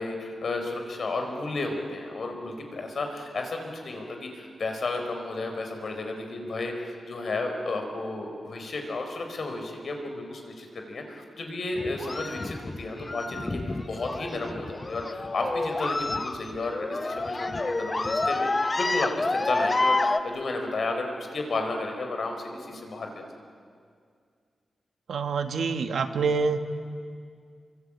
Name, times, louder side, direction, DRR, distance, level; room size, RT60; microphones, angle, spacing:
voice 1, 0.0-18.5 18.8-23.3, left 2 dB, 50° left, 4 dB, 4.3 m, -33 dB
sound 1, 11.8-20.2, left 2 dB, 20° left, 0.8 m, -29 dB
voice 2, 25.1-26.6, right 5 dB, 90° right, 7 dB, 1.6 m, -26 dB
28.0 x 24.5 x 8.8 m, 2.2 s
wide cardioid pair, 170°, 0 cm